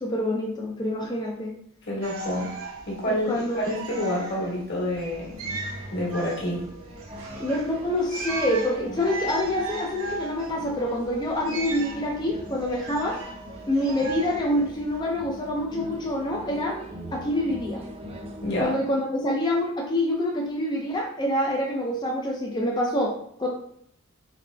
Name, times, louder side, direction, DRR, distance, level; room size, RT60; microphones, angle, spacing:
voice 1, 0.0-1.5 3.1-3.6 7.4-13.2 13.7-16.8 17.1-17.8 18.6-23.1 23.4-23.5, left 1 dB, 20° left, -1 dB, 0.5 m, -26 dB
voice 2, 1.9-2.5 2.9-5.3 5.9-6.6 18.4-18.8, left 1 dB, 50° left, -4 dB, 1.5 m, -28 dB
sound 1, 2.0-15.0, right 2 dB, 90° right, 0.9 m, -37 dB
sound 2, 5.3-18.6, equal, 25° right, 0.6 m, -41 dB
4.2 x 3.1 x 3.3 m, 0.67 s
head